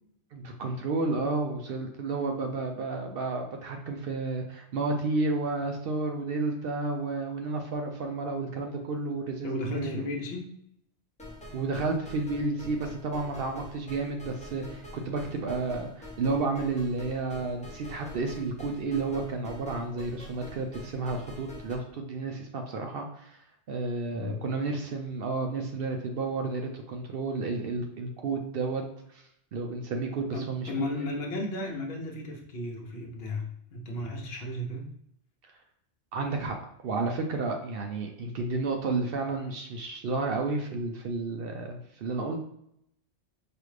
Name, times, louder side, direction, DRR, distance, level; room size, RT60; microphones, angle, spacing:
voice 1, 0.3-10.1 11.5-28.8 29.1-29.2 29.5-30.9 36.1-36.6 36.8-42.4, right 3 dB, 60° right, 3 dB, 0.7 m, -31 dB
voice 2, 9.4-10.5 24.1-24.4 30.3-34.9, left 1 dB, 60° left, 0 dB, 1.0 m, -34 dB
sound 1, 11.2-21.7, left 1 dB, 5° left, 0.8 m, -46 dB
4.9 x 2.4 x 3.2 m, 0.74 s
omnidirectional pair, 1.2 m